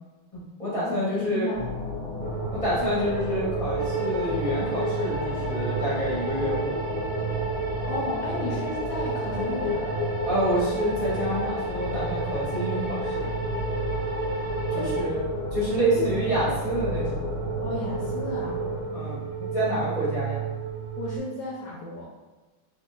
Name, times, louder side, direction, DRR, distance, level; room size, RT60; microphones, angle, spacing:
voice 1, 0.3-1.5 2.5-6.8 10.2-13.3 14.7-15.2 15.5-17.2 18.9-20.4, right 1 dB, 35° left, -10 dB, 0.6 m, -28 dB
voice 2, 0.8-1.6 7.8-10.0 14.6-15.1 15.9-16.0 17.6-19.2 21.0-22.1, left 2 dB, 75° left, -4 dB, 1.2 m, -34 dB
sound 1, 1.5-18.8, left 3 dB, 40° right, 1.0 m, -33 dB
sound 2, 2.2-21.2, right 8 dB, 85° right, 0.8 m, -33 dB
sound 3, 3.8-15.0, left 1 dB, 65° right, 1.0 m, -36 dB
3.6 x 2.3 x 2.3 m, 1.2 s
omnidirectional pair, 2.4 m